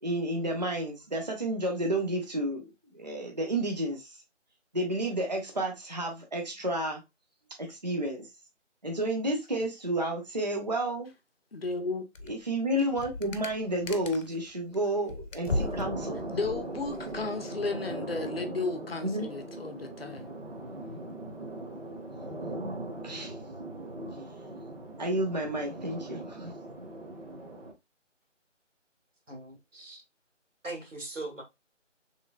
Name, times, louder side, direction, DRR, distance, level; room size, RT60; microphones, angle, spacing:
voice 1, 0.0-4.1 4.7-7.0 7.6-8.3 8.8-11.1 12.3-16.2 19.0-19.3 22.1-22.3 23.0-23.3 25.0-26.5, right 1 dB, 35° right, 0.5 m, -31 dB
voice 2, 11.5-12.0 16.3-20.4, left 3 dB, 50° left, 0.6 m, -34 dB
sound 1, 12.1-12.4 12.7-14.4 14.7-17.4, left 2 dB, 90° left, 0.7 m, -37 dB
sound 2, 15.5-27.7, right 2 dB, 50° right, 0.9 m, -39 dB
voice 3, 29.3-30.0 30.6-31.4, right 2 dB, 90° right, 1.6 m, -40 dB
3.1 x 3.0 x 2.3 m
figure-of-eight pair, 165°, 37 cm